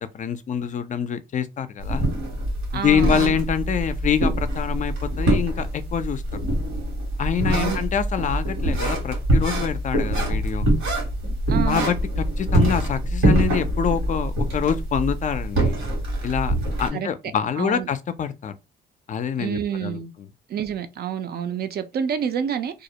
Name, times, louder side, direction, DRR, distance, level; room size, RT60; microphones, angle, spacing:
voice 1, 0.1-2.1 2.7-6.2 7.2-10.7 11.6-15.8 16.2-18.5 19.1-20.0, left 7 dB, 40° left, 0.4 m, -25 dB
sound 1, 1.8-16.9, right 1 dB, 80° right, 1.3 m, -24 dB
voice 2, 2.7-3.4 7.5-7.8 11.5-11.9 16.9-17.1 17.6-17.9 19.4-20.1 20.5-22.8, right 8 dB, 55° right, 0.5 m, -28 dB
2.4 x 2.0 x 2.8 m
cardioid pair, 90°, 20 cm